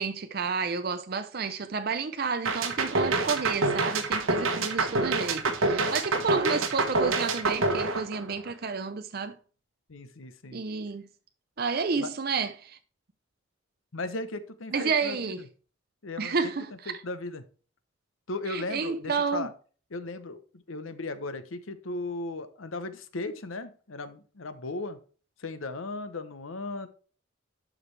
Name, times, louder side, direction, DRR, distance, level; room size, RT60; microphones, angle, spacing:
voice 1, 0.0-9.3 10.5-11.0 11.6-12.8 14.7-15.4 16.2-16.9 18.5-19.5, right 5 dB, 50° right, 0.6 m, -31 dB
sound 1, 2.5-8.7, right 3 dB, 90° right, 1.3 m, -27 dB
voice 2, 9.9-10.6 12.0-12.1 13.9-15.5 16.0-17.4 18.3-19.5 19.9-25.0 25.4-26.9, left 2 dB, 90° left, 0.9 m, -37 dB
11.5 x 5.0 x 3.3 m
head